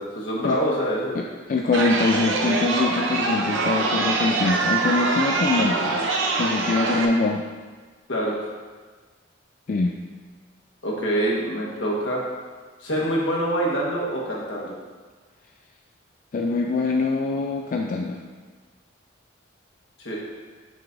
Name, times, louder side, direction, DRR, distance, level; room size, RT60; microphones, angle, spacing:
voice 1, 0.0-1.3 8.1-8.4 10.8-12.2 12.8-14.7 20.0-20.2, right 1 dB, 75° left, -5 dB, 1.5 m, -25 dB
voice 2, 1.2-6.0 6.4-7.4 9.7-10.0 16.3-18.2, left 3 dB, 45° left, 1 dB, 0.3 m, -24 dB
Chatter, 1.7-7.1, right 3 dB, 85° right, 0.7 m, -24 dB
6.1 x 6.0 x 2.6 m, 1.4 s
head